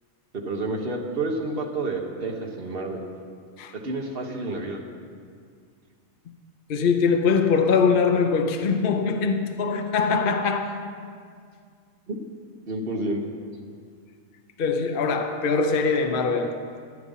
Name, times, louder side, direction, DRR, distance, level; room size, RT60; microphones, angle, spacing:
voice 1, 0.4-3.0 3.8-4.8 12.1-12.2 12.7-13.3, right 2 dB, 45° right, 1.4 m, -29 dB
voice 2, 6.7-10.8 14.6-16.7, left 5 dB, 50° left, 0.8 m, -22 dB
14.0 x 9.6 x 5.5 m
omnidirectional pair, 1.4 m